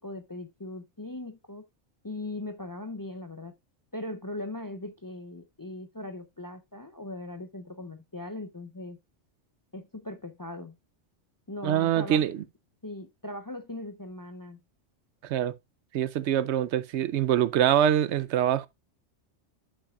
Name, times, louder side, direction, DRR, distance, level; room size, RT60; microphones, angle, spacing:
voice 1, 0.0-1.6 2.0-3.5 3.9-9.0 9.7-10.8 11.5-12.2 12.8-14.6, left 2 dB, 30° left, 0.3 m, -39 dB
voice 2, 11.6-12.4 15.2-15.5 15.9-18.7, right 10 dB, 75° right, 0.9 m, -24 dB
11.0 x 5.7 x 2.3 m
omnidirectional pair, 1.2 m